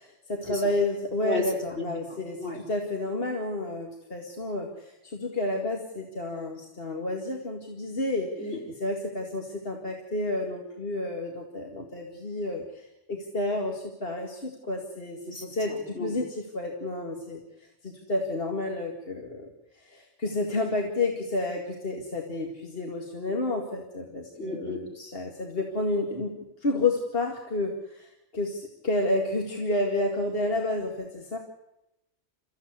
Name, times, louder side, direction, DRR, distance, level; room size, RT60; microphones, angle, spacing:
voice 1, 0.0-8.3 8.8-19.5 19.8-31.4, left 2 dB, 55° left, 1 dB, 2.5 m, -30 dB
voice 2, 1.2-2.6 8.4-8.6 15.2-16.1 24.4-24.8, left 2 dB, 70° left, 0 dB, 5.0 m, -34 dB
29.5 x 15.0 x 8.2 m, 0.90 s
omnidirectional pair, 1.2 m